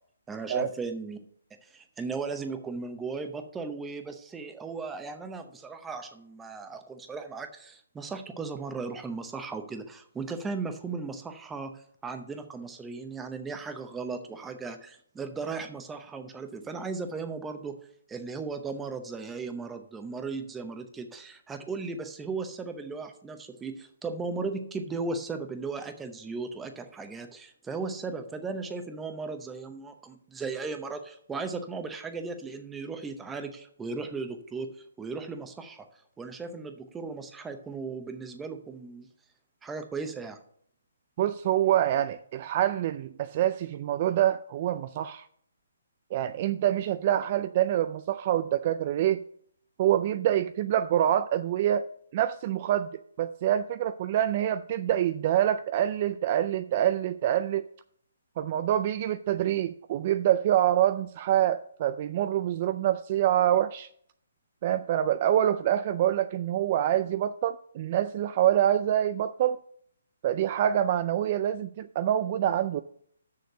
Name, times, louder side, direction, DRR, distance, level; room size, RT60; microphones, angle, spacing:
voice 1, 0.3-1.2 1.6-17.7 18.1-34.7 35.0-35.8 36.2-39.1 39.6-40.4, right 4 dB, 10° right, 7 dB, 0.7 m, -36 dB
voice 2, 41.2-45.2 46.1-49.2 49.8-52.9 53.2-57.7 58.4-63.9 64.6-69.6 70.2-72.8, right 11 dB, 35° right, 12 dB, 0.3 m, -26 dB
6.6 x 6.4 x 6.6 m, 0.64 s
hypercardioid pair, 160°, 0 cm